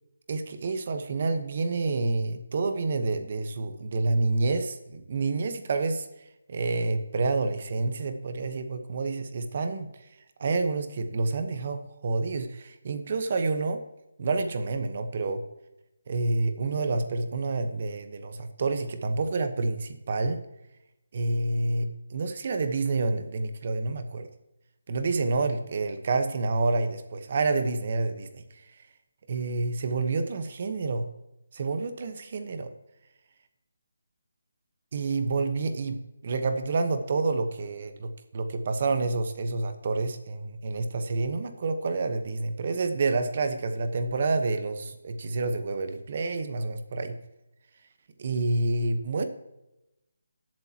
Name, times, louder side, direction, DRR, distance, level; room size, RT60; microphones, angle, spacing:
voice 1, 0.3-6.1 6.5-9.9 10.4-13.8 14.2-15.4 16.1-20.4 21.1-24.3 24.9-28.4 29.3-31.1 31.5-32.7 34.9-36.0 36.2-47.2 48.2-49.2, right 3 dB, 40° right, 8 dB, 1.1 m, -28 dB
18.5 x 7.6 x 2.9 m, 0.94 s
hypercardioid pair, 170°, 0 cm